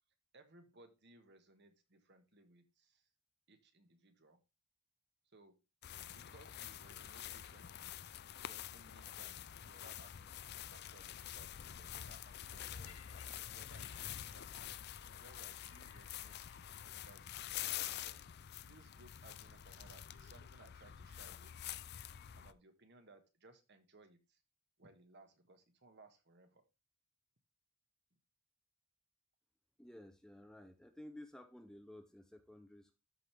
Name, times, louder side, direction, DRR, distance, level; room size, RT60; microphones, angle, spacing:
voice 1, 0.3-3.1 3.5-4.4 5.3-5.6 6.1-7.9 8.5-14.8 15.1-16.6 16.9-18.2 18.6-21.8 22.3-24.4 24.8-26.7 28.1-28.2, right 2 dB, 55° right, 1.6 m, -63 dB
walking through high grass short, 5.8-22.5, left 11 dB, 50° left, 0.5 m, -47 dB
Laughter, 12.8-17.1 17.9-18.1, left 8 dB, 85° left, 1.2 m, -64 dB
voice 2, 29.8-33.0, left 1 dB, 5° left, 0.6 m, -54 dB
13.0 x 4.6 x 3.3 m
head